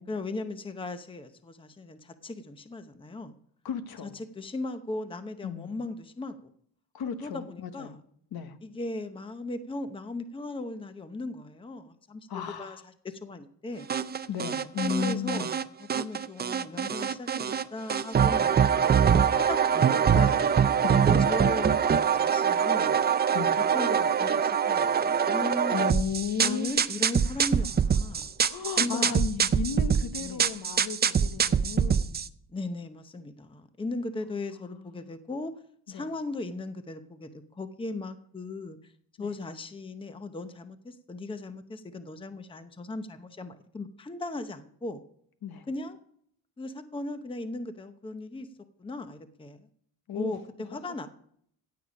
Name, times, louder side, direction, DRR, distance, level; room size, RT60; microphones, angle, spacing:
voice 1, 0.1-3.3 4.0-6.5 7.2-7.9 8.6-13.9 14.8-15.5 15.8-20.4 21.0-21.8 22.1-23.0 23.7-25.9 26.4-28.3 28.8-29.1 30.2-30.5 32.5-35.5 35.9-38.9 39.2-45.0 45.7-46.0 46.6-48.5 48.8-49.6 50.1-51.1, left 2 dB, 15° left, 9 dB, 0.8 m, -37 dB
voice 2, 3.6-4.2 5.4-5.8 6.9-8.0 8.3-8.6 12.3-12.8 14.3-15.5 20.8-21.1 23.3-23.6 25.7-26.8 27.4-27.9 28.4-32.1 34.5-35.1 35.9-36.1 39.2-39.3 45.4-45.7 50.1-50.4, left 7 dB, 65° left, 9 dB, 1.2 m, -35 dB
sound 1, 13.9-15.6 15.9-17.6 17.9-32.3, right 7 dB, 25° right, 0.4 m, -24 dB
16.0 x 8.7 x 5.1 m, 0.67 s
cardioid pair, 130°, 39 cm